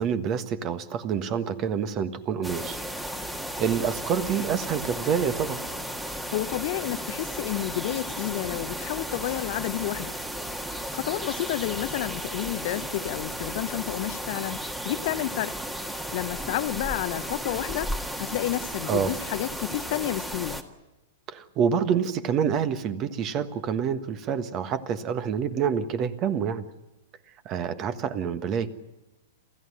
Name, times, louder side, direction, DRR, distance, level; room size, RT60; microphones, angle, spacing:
voice 1, 0.0-2.8 3.6-5.6 18.8-19.1 21.3-26.6 27.4-28.7, right 7 dB, 35° right, 1.4 m, -27 dB
sound 1, 2.4-20.6, equal, 5° right, 1.7 m, -34 dB
voice 2, 6.3-10.1 10.9-14.6 14.8-15.5 16.1-20.6, left 15 dB, 50° left, 0.8 m, -30 dB
28.0 x 14.5 x 9.8 m
figure-of-eight pair, 105°, 0 cm